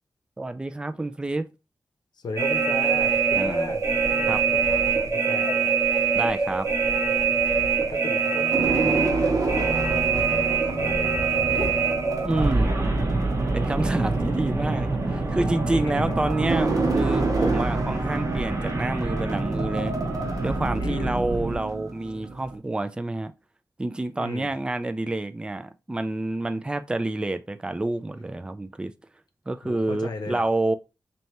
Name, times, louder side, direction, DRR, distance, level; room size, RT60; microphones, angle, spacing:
voice 1, 0.4-1.5 3.3-3.7 4.3-4.4 6.1-6.7 12.2-12.7 13.5-19.9 20.4-23.3 23.8-28.9 29.5-30.7, right 2 dB, 15° right, 0.3 m, -28 dB
voice 2, 2.1-5.7 7.5-11.8 15.7-16.2 20.8-21.2 24.2-24.5 29.6-30.4, left 3 dB, 75° left, 0.7 m, -37 dB
sound 1, 2.4-21.6, right 5 dB, 40° right, 0.9 m, -25 dB
sound 2, 7.8-22.5, right 3 dB, 60° right, 1.2 m, -29 dB
sound 3, 9.4-14.8, left 2 dB, 20° left, 1.1 m, -39 dB
3.2 x 2.7 x 4.2 m
wide cardioid pair, 140°, 7 cm